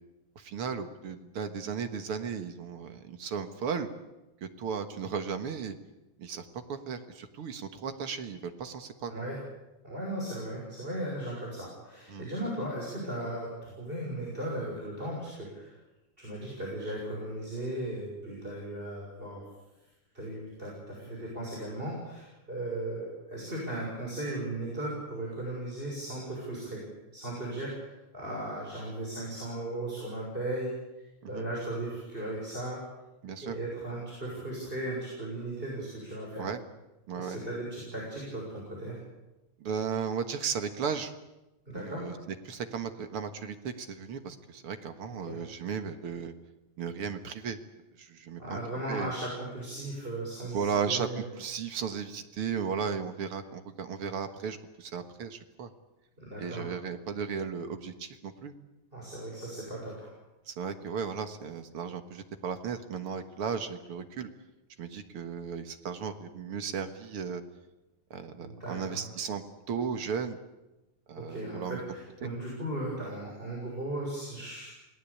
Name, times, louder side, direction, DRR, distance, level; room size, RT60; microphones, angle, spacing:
voice 1, 0.4-3.9 4.4-5.7 6.2-9.1 12.1-12.3 31.2-31.4 33.2-33.6 36.4-36.6 37.1-37.4 39.6-41.1 41.7-46.3 46.8-47.6 48.0-48.6 48.9-49.1 50.5-55.7 56.4-58.5 60.5-64.3 64.8-67.4 68.1-70.4 71.1-71.8 72.2-72.3, right 6 dB, 55° right, 8 dB, 2.1 m, -35 dB
voice 2, 9.1-9.4 9.8-15.7 16.2-19.4 20.1-26.8 27.1-30.7 31.0-32.8 33.4-36.5 37.1-39.0 41.7-42.1 45.2-45.4 48.4-51.2 56.2-56.7 58.9-60.1 68.4-69.0 71.1-74.7, right 1 dB, 15° right, -3 dB, 6.5 m, -37 dB
28.5 x 18.5 x 8.6 m, 0.99 s
omnidirectional pair, 3.4 m